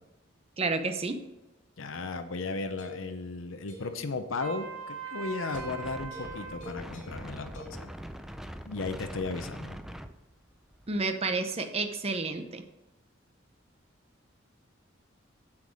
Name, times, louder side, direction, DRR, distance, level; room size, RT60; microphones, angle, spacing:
voice 1, 0.6-1.2 10.9-12.6, right 3 dB, 30° right, 7 dB, 0.7 m, -30 dB
voice 2, 1.8-7.9 8.7-9.8, left 3 dB, 80° left, 7 dB, 0.8 m, -35 dB
sound 1, 2.0-4.1 5.5-7.7, left 2 dB, 40° left, 2.5 m, -48 dB
Trumpet, 4.4-6.6, right 6 dB, 85° right, 1.5 m, -40 dB
Wind, 5.5-11.0, equal, ahead, 0.4 m, -43 dB
7.7 x 7.4 x 4.9 m, 1.0 s
head